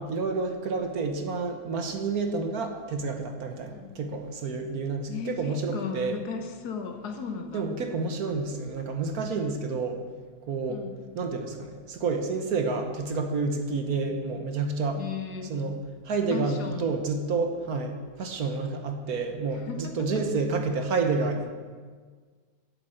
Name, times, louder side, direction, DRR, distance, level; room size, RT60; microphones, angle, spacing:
voice 1, 0.0-6.2 7.5-10.0 10.4-10.8 11.1-15.0 15.5-15.8 16.0-21.5, right 4 dB, 60° right, 5 dB, 1.4 m, -29 dB
voice 2, 3.7-4.0 5.1-7.8 10.7-11.0 14.0-14.2 15.0-15.6 16.3-17.0 19.5-20.2, left 6 dB, 65° left, 5 dB, 1.5 m, -36 dB
8.5 x 7.6 x 7.9 m, 1.5 s
omnidirectional pair, 1.9 m